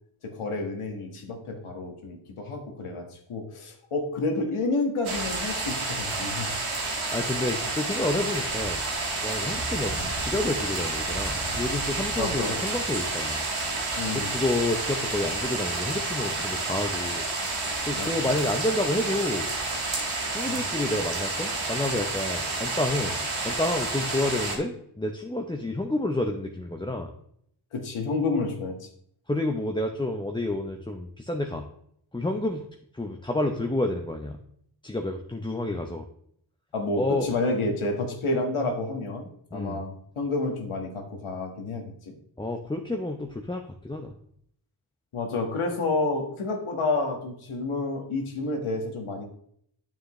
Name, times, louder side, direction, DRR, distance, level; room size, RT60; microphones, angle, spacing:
voice 1, 0.2-6.5 12.2-12.6 14.0-14.4 18.0-18.1 20.5-20.6 27.7-28.9 36.7-42.1 45.1-49.3, left 2 dB, 85° left, 3 dB, 1.7 m, -29 dB
sound 1, 5.0-24.6, right 3 dB, 75° right, 2.5 m, -30 dB
voice 2, 7.1-8.8 9.2-13.5 14.1-17.2 17.9-19.5 20.3-23.2 23.4-27.1 29.3-31.7 32.1-32.7 32.9-34.4 34.8-36.1 36.9-37.3 39.5-39.8 42.4-44.1, left 1 dB, 10° left, 3 dB, 0.7 m, -29 dB
9.1 x 7.2 x 3.1 m, 0.68 s
wide cardioid pair, 85°, 49 cm